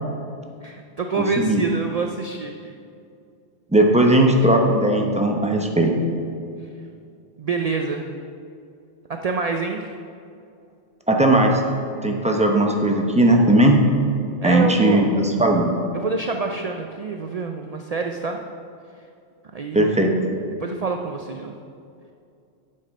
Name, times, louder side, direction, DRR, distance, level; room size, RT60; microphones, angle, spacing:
voice 1, 0.6-2.7 7.4-8.1 9.1-9.9 14.4-15.2 15.9-18.4 19.5-19.9 20.6-21.5, right 4 dB, 70° right, 4 dB, 0.3 m, -27 dB
voice 2, 1.1-1.6 3.7-5.9 11.1-11.6 12.0-13.8 14.4-15.7 19.7-20.1, right 1 dB, 5° right, 1 dB, 0.7 m, -17 dB
7.6 x 7.3 x 5.3 m, 2.4 s
omnidirectional pair, 1.2 m